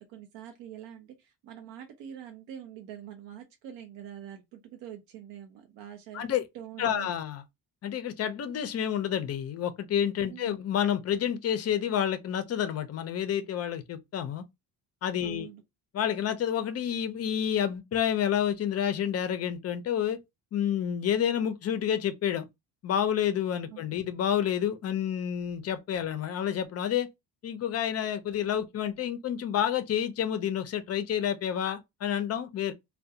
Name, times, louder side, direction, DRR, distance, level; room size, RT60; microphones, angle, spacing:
voice 1, 0.0-6.2 6.5-7.1 10.2-10.6 15.2-15.6 23.7-24.1, right 10 dB, 85° right, 0.7 m, -45 dB
voice 2, 6.8-7.4 7.8-14.4 15.0-15.5 15.9-20.2 20.5-22.5 22.8-27.1 27.4-32.7, left 9 dB, 40° left, 0.4 m, -29 dB
2.3 x 2.2 x 2.7 m
cardioid pair, 135°, 42 cm